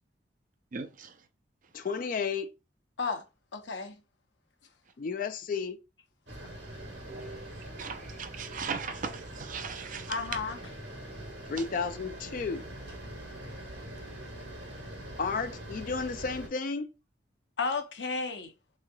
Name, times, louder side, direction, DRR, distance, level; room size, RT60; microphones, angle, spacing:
voice 1, 0.7-1.1 7.8-10.1, right 5 dB, 45° right, 0.5 m, -38 dB
voice 2, 1.7-2.5 5.0-5.8 11.5-12.6 15.2-16.9, left 5 dB, 45° left, 0.4 m, -32 dB
voice 3, 3.5-4.0 10.1-10.6 17.6-18.5, left 4 dB, 75° left, 0.7 m, -33 dB
sound 1, 6.3-16.5, right 1 dB, 70° right, 1.2 m, -43 dB
3.6 x 3.1 x 2.3 m
head